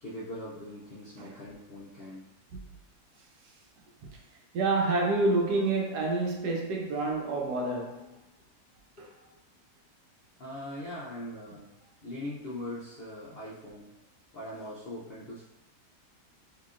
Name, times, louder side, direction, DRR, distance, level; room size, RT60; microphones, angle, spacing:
voice 1, 0.0-2.3 9.0-9.1 10.4-11.7 12.0-13.9 14.3-15.4, left 1 dB, 70° left, -8 dB, 0.5 m, -41 dB
voice 2, 4.5-8.1, right 3 dB, 85° right, 0 dB, 1.2 m, -28 dB
3.8 x 2.8 x 2.4 m, 0.94 s
omnidirectional pair, 1.7 m